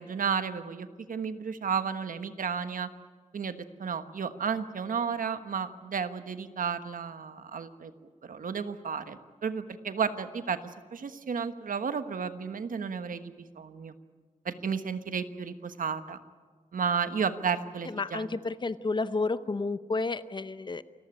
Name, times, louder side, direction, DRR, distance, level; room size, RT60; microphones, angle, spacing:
voice 1, 0.0-2.9 3.3-7.9 8.2-13.9 14.4-16.2 16.7-18.4, right 6 dB, 80° right, 10 dB, 1.3 m, -33 dB
voice 2, 18.0-20.8, left 3 dB, 35° left, 14 dB, 0.8 m, -31 dB
28.5 x 15.0 x 9.9 m, 1.5 s
wide cardioid pair, 150°, 14 cm